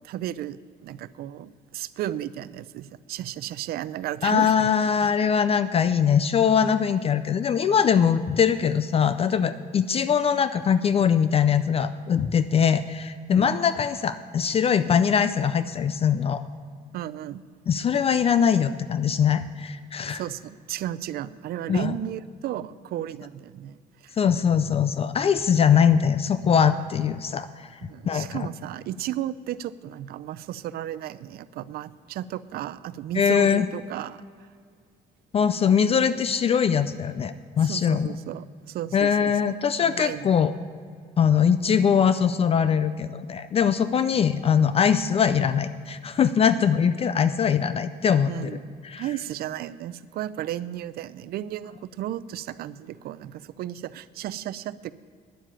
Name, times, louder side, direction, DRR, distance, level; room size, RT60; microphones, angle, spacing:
voice 1, 0.0-4.7 9.7-9.8 13.3-13.6 16.9-17.4 20.1-24.1 27.8-34.5 37.6-39.3 39.9-40.5 44.1-44.2 48.3-48.6 49.0-54.9, right 12 dB, 65° right, 16 dB, 0.5 m, -34 dB
voice 2, 4.2-16.4 17.7-20.2 21.7-22.0 24.2-27.8 28.1-28.5 33.2-33.7 35.3-38.1 38.9-40.5 41.2-48.3 48.8-49.0, left 7 dB, 35° left, 13 dB, 0.4 m, -22 dB
10.0 x 7.3 x 8.9 m, 2.1 s
cardioid pair, 110°, 17 cm